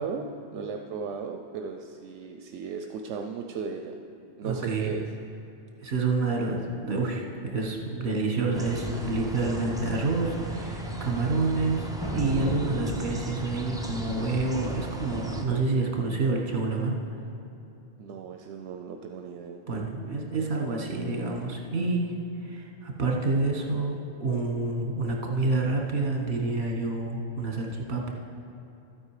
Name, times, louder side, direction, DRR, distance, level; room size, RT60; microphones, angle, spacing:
voice 1, 0.0-3.9 4.4-5.0 18.0-19.6, right 5 dB, 85° right, 4 dB, 0.9 m, -36 dB
voice 2, 4.4-4.9 5.8-17.0 19.7-28.1, right 3 dB, 65° right, 0 dB, 1.6 m, -28 dB
sound 1, 8.5-15.4, right 1 dB, 5° right, 0.6 m, -36 dB
sound 2, 12.0-13.7, equal, 20° right, 1.5 m, -34 dB
12.5 x 8.6 x 4.9 m, 2.7 s
omnidirectional pair, 1.2 m